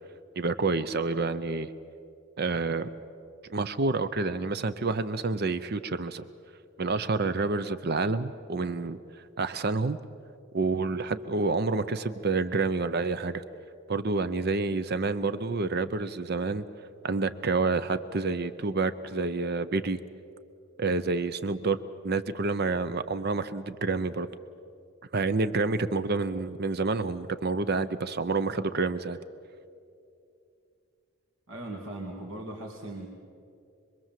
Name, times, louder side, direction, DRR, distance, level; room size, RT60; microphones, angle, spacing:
voice 1, 0.4-1.7 2.4-2.9 3.5-6.2 6.8-9.0 9.4-10.0 10.5-13.4 13.9-16.6 17.0-20.0 20.8-21.8 22.0-24.3 25.1-29.2, right 3 dB, 50° right, 13 dB, 0.6 m, -28 dB
voice 2, 31.5-33.1, right 1 dB, 85° right, 0 dB, 2.5 m, -38 dB
26.0 x 22.5 x 7.5 m, 2.6 s
head